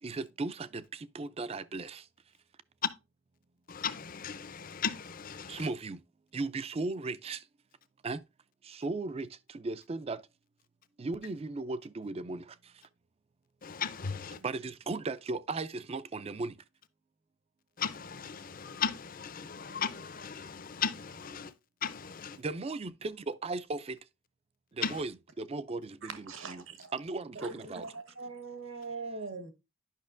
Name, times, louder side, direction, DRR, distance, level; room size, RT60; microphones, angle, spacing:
voice 1, 0.0-2.1 5.5-6.0 6.3-7.5 8.0-8.2 8.6-10.2 11.0-12.8 14.4-16.6 22.4-24.0 24.7-26.2 26.4-26.6 26.9-27.9, right 3 dB, 30° right, 0.3 m, -37 dB
voice 2, 3.7-5.7 13.6-14.4 17.8-21.5 21.8-22.4 24.8-25.0, left 7 dB, 40° left, 0.5 m, -36 dB
voice 3, 26.0-26.9 27.3-29.5, right 4 dB, 65° right, 1.2 m, -42 dB
10.5 x 5.7 x 2.5 m
head